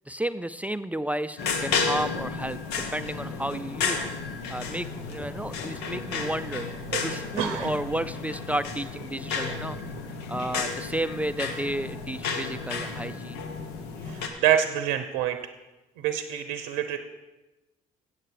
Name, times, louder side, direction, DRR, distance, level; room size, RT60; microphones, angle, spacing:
voice 1, 0.1-4.1 4.5-6.7 7.0-9.8 10.3-13.4, right 1 dB, 10° right, 13 dB, 0.4 m, -32 dB
sound 1, 1.4-14.3, left 5 dB, 80° left, 1.2 m, -32 dB
voice 2, 7.4-7.7 14.0-15.4 16.0-17.0, right 10 dB, 85° right, 9 dB, 0.6 m, -26 dB
8.0 x 7.7 x 7.5 m, 1.1 s
supercardioid pair, 60°, 17 cm